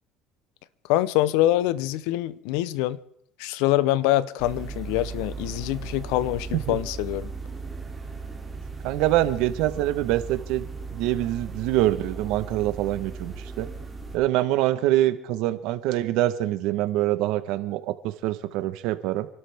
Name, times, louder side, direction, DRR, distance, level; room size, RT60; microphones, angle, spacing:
voice 1, 0.9-3.0 3.4-7.3, left 15 dB, 85° left, 0.7 m, -24 dB
sound 1, 4.4-14.2, right 4 dB, 15° right, 2.8 m, -37 dB
voice 2, 8.8-10.7 10.9-13.7 14.1-19.3, right 14 dB, 75° right, 1.1 m, -25 dB
27.5 x 12.5 x 3.5 m
cardioid pair, 115°, 0 cm